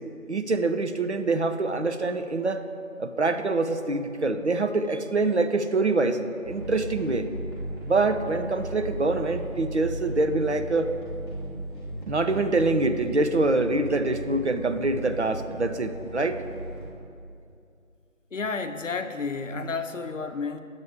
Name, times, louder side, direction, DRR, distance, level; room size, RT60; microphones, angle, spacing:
voice 1, 0.3-2.7 3.0-7.3 7.8-10.9 12.1-16.4, right 3 dB, 55° right, 8 dB, 0.5 m, -25 dB
sound 1, 6.4-16.9, right 1 dB, 20° right, 1.4 m, -36 dB
voice 2, 18.3-20.6, left 4 dB, 65° left, 8 dB, 0.7 m, -31 dB
9.8 x 8.1 x 3.6 m, 2.5 s
figure-of-eight pair, 170°, 41 cm